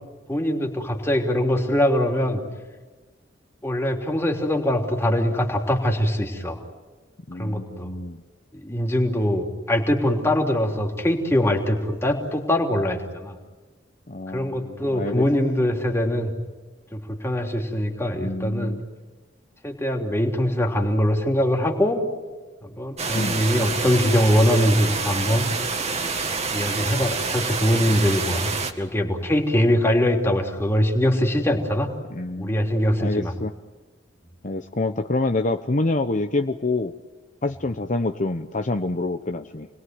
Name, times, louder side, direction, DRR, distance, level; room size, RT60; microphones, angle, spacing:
voice 1, 0.3-2.4 3.6-6.6 7.4-7.9 8.5-13.4 14.3-16.3 16.9-18.7 19.6-22.1 22.8-25.5 26.5-28.5 28.8-31.9 32.4-33.3, equal, 15° left, 1 dB, 3.3 m, -22 dB
voice 2, 7.3-8.2 14.1-15.3 18.2-18.8 23.1-23.4 32.1-32.6 33.0-33.5 34.4-36.9 37.4-39.7, left 2 dB, 40° left, 6 dB, 0.9 m, -27 dB
sound 1, 23.0-28.7, right 4 dB, 35° right, 2.1 m, -27 dB
30.0 x 21.0 x 9.5 m, 1.3 s
head